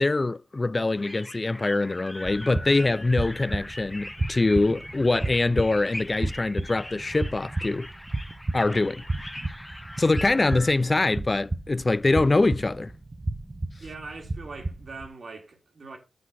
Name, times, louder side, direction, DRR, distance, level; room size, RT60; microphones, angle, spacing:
voice 1, 0.0-7.9 8.5-9.0 10.0-12.9, left 2 dB, 35° left, 0.3 m, -24 dB
sound 1, 1.0-10.7, left 1 dB, 10° left, 0.8 m, -41 dB
sound 2, 2.2-15.1, right 2 dB, 35° right, 0.6 m, -33 dB
voice 2, 13.8-16.0, right 3 dB, 65° right, 2.1 m, -41 dB
7.7 x 3.1 x 6.0 m
supercardioid pair, 45°, 0 cm